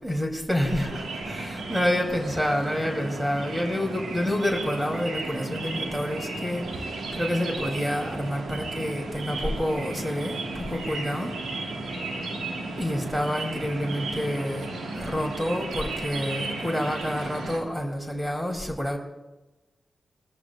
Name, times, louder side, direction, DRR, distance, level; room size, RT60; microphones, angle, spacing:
voice 1, 0.0-11.4 12.8-14.7 14.9-19.0, equal, 15° right, 1 dB, 3.2 m, -28 dB
sound 1, 0.6-17.6, right 2 dB, 85° right, 1.9 m, -34 dB
20.5 x 14.0 x 2.5 m, 1.1 s
supercardioid pair, 40°, 0 cm